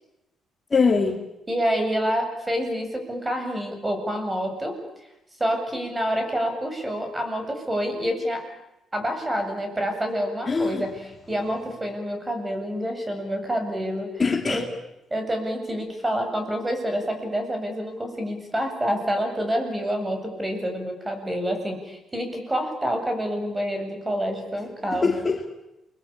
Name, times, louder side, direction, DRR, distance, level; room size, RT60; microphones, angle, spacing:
voice 1, 0.7-1.2 10.5-10.8 14.2-14.7 24.9-25.5, left 4 dB, 30° left, 4 dB, 2.7 m, -22 dB
voice 2, 1.5-4.7 5.4-8.4 8.9-11.0 11.3-14.7 15.1-25.2, equal, 15° right, 5 dB, 7.9 m, -27 dB
29.0 x 21.5 x 8.8 m, 0.94 s
cardioid pair, 90°, 0 cm